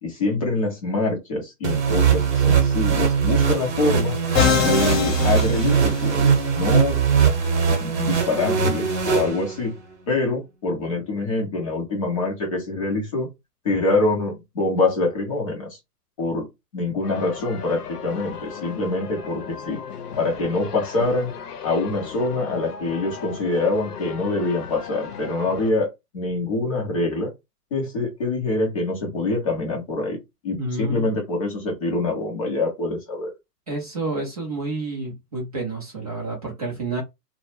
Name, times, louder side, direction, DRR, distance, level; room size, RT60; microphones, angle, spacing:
voice 1, 0.0-4.2 4.6-7.0 7.8-9.7 10.1-13.3 13.6-15.8 16.2-16.5 16.7-19.8 20.2-21.3 21.6-25.9 26.1-27.3 27.7-30.2 30.4-33.3, left 2 dB, 20° left, 0.5 m, -25 dB
sound 1, 1.6-9.8, right 6 dB, 45° right, 0.9 m, -21 dB
Musical instrument, 4.3-6.4, left 6 dB, 40° left, 0.9 m, -23 dB
sound 2, 17.0-25.7, left 7 dB, 70° left, 0.7 m, -37 dB
voice 2, 30.6-31.1 33.7-37.0, right 2 dB, 25° right, 0.4 m, -29 dB
2.2 x 2.0 x 3.1 m
figure-of-eight pair, 125°, 48 cm